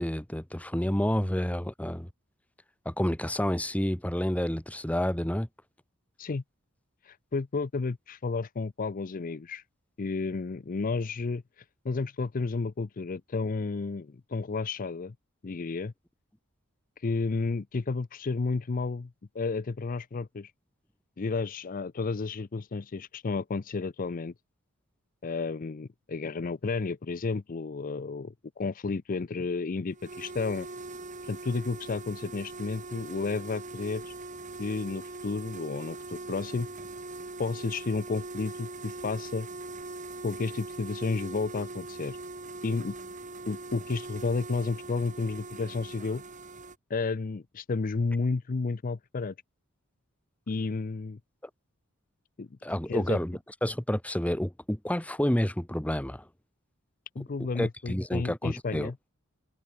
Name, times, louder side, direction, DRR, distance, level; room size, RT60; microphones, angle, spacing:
voice 1, 0.0-2.1 2.8-5.5 52.6-56.3 57.5-58.9, equal, 5° left, 1.1 m, -29 dB
voice 2, 7.0-9.6 10.0-15.1 15.4-15.9 17.0-20.5 21.2-24.3 25.2-30.7 31.2-34.1 34.6-36.7 37.4-39.5 40.2-42.2 42.6-43.0 43.5-46.2 46.9-49.3 50.5-51.2 52.4-52.5 52.9-53.2 57.2-58.9, left 4 dB, 40° left, 0.5 m, -32 dB
sound 1, 29.9-46.8, right 3 dB, 35° right, 2.0 m, -41 dB
head